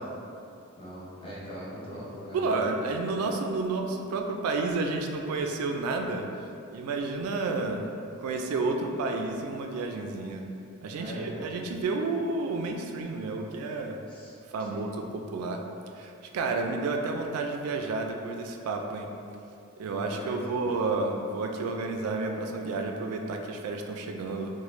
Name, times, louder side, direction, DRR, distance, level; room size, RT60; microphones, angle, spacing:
voice 1, 0.8-2.9 11.0-11.5 14.1-14.3 14.6-14.9 19.8-20.7, equal, 25° left, -7 dB, 0.6 m, -41 dB
voice 2, 2.3-6.2 6.7-10.4 10.8-14.0 14.5-15.0 15.3-15.6 16.0-19.1 19.8-24.5, right 3 dB, 85° right, 7 dB, 0.3 m, -30 dB
3.1 x 2.1 x 3.0 m, 2.7 s
head